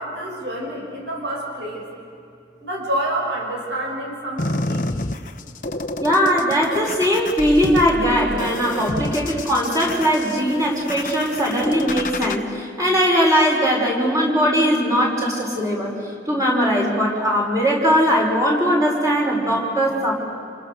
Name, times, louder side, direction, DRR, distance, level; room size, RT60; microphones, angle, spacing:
voice 1, 0.0-1.8 2.6-5.1, right 1 dB, 80° right, -1 dB, 6.4 m, -28 dB
sound 1, 4.4-12.4, left 2 dB, 45° left, 0.9 m, -29 dB
voice 2, 6.0-15.9 16.3-20.1, equal, 20° right, -2 dB, 5.7 m, -19 dB
30.0 x 28.5 x 6.8 m, 2.5 s
head